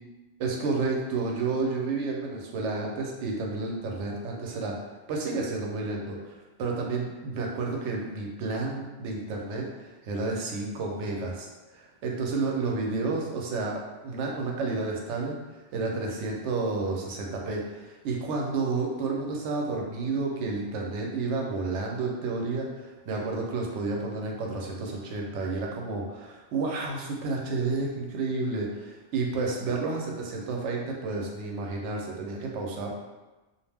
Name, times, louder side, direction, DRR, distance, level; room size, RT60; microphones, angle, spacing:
voice 1, 0.4-4.7 5.1-15.4 15.7-32.9, right 3 dB, 90° right, 0 dB, 0.9 m, -31 dB
2.4 x 2.0 x 3.3 m, 1.1 s
omnidirectional pair, 1.2 m